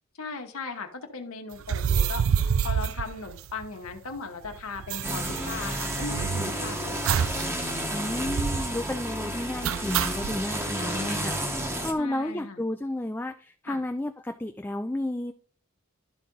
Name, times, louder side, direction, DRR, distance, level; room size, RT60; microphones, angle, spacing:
voice 1, 0.2-7.0 10.8-11.3 12.0-12.6 13.7-13.8, left 4 dB, 80° left, 4 dB, 1.1 m, -38 dB
sound 1, 1.6-3.9 4.2-4.3 4.4-6.6 7.1-7.5 7.8-7.9 8.2-8.7 9.6-10.4, right 7 dB, 70° right, 0.4 m, -27 dB
sound 2, 5.0-11.9, right 1 dB, 10° right, 0.9 m, -31 dB
voice 2, 7.9-11.6 11.8-15.3, left 1 dB, 10° left, 6 dB, 0.3 m, -32 dB
12.0 x 4.0 x 3.8 m, 0.43 s
head